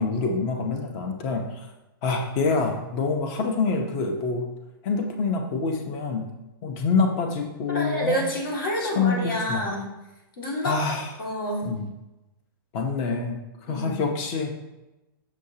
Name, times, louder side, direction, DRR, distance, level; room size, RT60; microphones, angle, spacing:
voice 1, 0.0-1.7 2.0-4.5 4.8-6.3 6.6-8.2 8.8-9.7 10.6-11.1 11.6-11.9 12.7-13.4 13.7-14.5, left 4 dB, 30° left, 4 dB, 0.8 m, -26 dB
voice 2, 7.7-9.9 10.4-10.8 11.2-11.7 13.7-14.0, equal, 70° left, -2 dB, 2.1 m, -28 dB
6.4 x 6.3 x 2.8 m, 0.99 s
hypercardioid pair, 160°, 12 cm